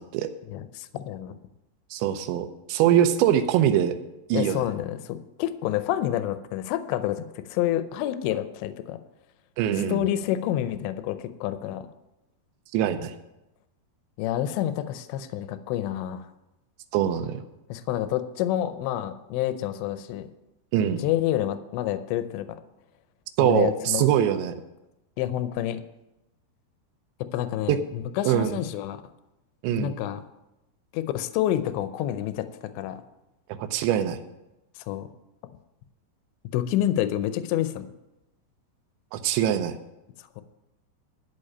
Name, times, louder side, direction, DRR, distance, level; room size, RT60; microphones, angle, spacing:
voice 1, 0.5-1.3 4.3-9.0 9.9-11.8 14.2-16.3 17.7-20.3 21.0-22.6 23.4-24.1 25.2-25.8 27.2-29.0 29.8-30.2 30.9-32.5 32.8-33.0 34.9-35.1 36.5-37.9 40.4-40.5, left 12 dB, 85° left, 11 dB, 2.9 m, -28 dB
voice 2, 1.9-3.9 4.3-4.6 9.6-10.0 12.7-13.1 16.9-17.4 20.7-21.0 23.4-24.5 27.7-27.8 28.3-28.6 29.6-29.9 33.6-34.2 39.1-39.7, right 10 dB, 85° right, 9 dB, 3.1 m, -23 dB
13.0 x 5.3 x 8.7 m, 0.94 s
omnidirectional pair, 5.1 m